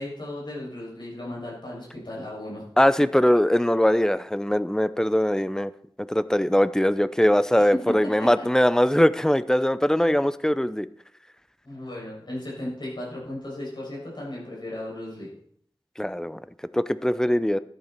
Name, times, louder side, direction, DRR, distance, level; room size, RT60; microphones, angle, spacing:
voice 1, 0.0-2.6 7.9-8.3 10.0-10.1 11.6-15.3, left 1 dB, 55° left, -5 dB, 7.2 m, -36 dB
voice 2, 2.8-5.7 6.1-10.9 16.0-16.4 16.7-17.6, equal, 5° left, 15 dB, 0.6 m, -21 dB
13.5 x 11.5 x 4.5 m, 0.65 s
wide cardioid pair, 70°, 9 cm